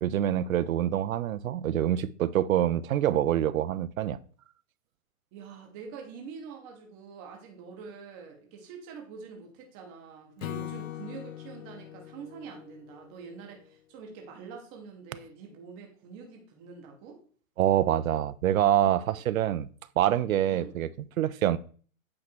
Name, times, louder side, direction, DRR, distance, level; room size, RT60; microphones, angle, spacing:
voice 1, 0.0-4.2 17.6-19.7 20.0-20.9 21.2-21.6, right 11 dB, 75° right, 0.6 m, -25 dB
voice 2, 5.3-17.2 20.5-20.8, right 5 dB, 10° right, 0.7 m, -45 dB
Acoustic guitar / Strum, 10.4-13.7, left 12 dB, 70° left, 0.6 m, -42 dB
8.6 x 3.2 x 6.0 m
hypercardioid pair, 175°, 41 cm